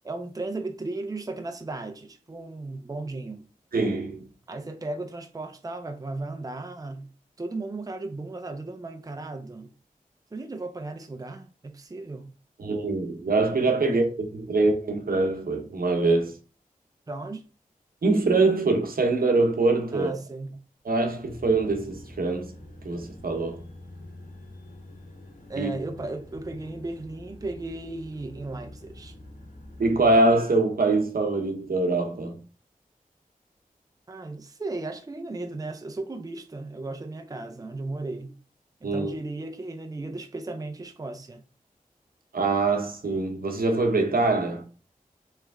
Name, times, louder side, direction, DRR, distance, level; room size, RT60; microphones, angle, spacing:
voice 1, 0.0-3.4 4.5-7.1 7.4-9.7 10.3-12.3 13.8-14.0 17.1-17.4 19.9-20.6 25.5-29.2 34.1-38.4 38.8-41.4, right 2 dB, 25° right, 0.5 m, -35 dB
voice 2, 3.7-4.2 12.6-16.3 18.0-20.1 20.8-22.5 22.8-23.6 25.6-25.7 29.8-32.4 38.8-39.1 42.3-44.6, right 3 dB, 75° right, 0.9 m, -24 dB
sound 1, 21.2-30.1, left 1 dB, 60° left, 1.3 m, -46 dB
3.3 x 3.3 x 3.4 m
cardioid pair, 50°, 15 cm